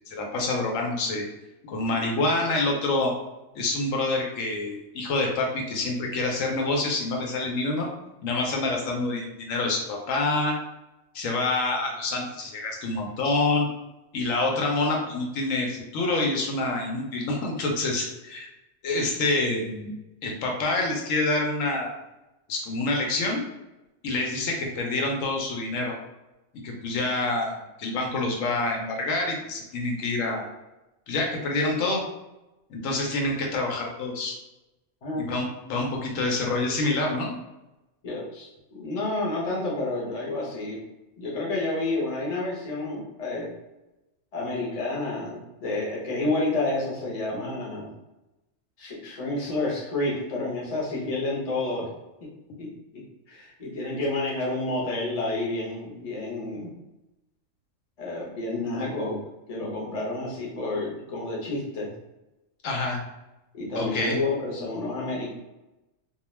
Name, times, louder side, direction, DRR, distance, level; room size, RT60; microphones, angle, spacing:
voice 1, 0.1-1.2 1.7-3.1 3.6-7.9 8.2-10.6 11.1-13.7 14.1-18.5 18.8-19.9 20.2-21.9 22.5-23.4 24.0-25.9 26.6-30.5 31.1-32.0 32.7-34.4 35.2-37.3 62.6-63.0 63.7-64.2, left 2 dB, 80° left, 0 dB, 1.0 m, -27 dB
voice 2, 38.0-40.8 41.2-43.5 44.3-47.9 48.8-51.9 52.6-52.7 53.3-56.7 58.0-59.2 59.5-61.9 63.5-65.3, left 2 dB, 35° left, -4 dB, 0.7 m, -29 dB
2.3 x 2.2 x 3.1 m, 0.98 s
omnidirectional pair, 1.4 m